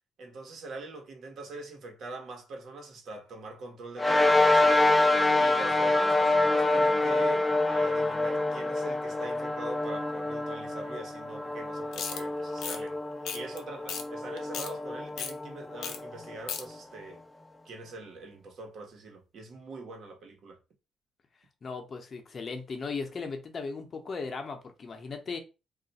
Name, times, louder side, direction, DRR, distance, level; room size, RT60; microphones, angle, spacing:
voice 1, 0.2-4.7 5.4-13.0 13.3-17.2 17.6-20.6, right 3 dB, 65° right, 1.0 m, -43 dB
sound 1, 4.0-16.7, left 2 dB, 10° left, 0.4 m, -26 dB
sound 2, 11.9-12.2 12.6-12.8 13.3-13.6 13.9-14.0 14.4-14.7 15.2-15.3 15.8-16.0 16.2-16.6, left 7 dB, 80° left, 0.5 m, -35 dB
voice 2, 21.6-25.4, left 4 dB, 45° left, 0.8 m, -37 dB
2.4 x 2.2 x 4.0 m
cardioid pair, 90°, 0 cm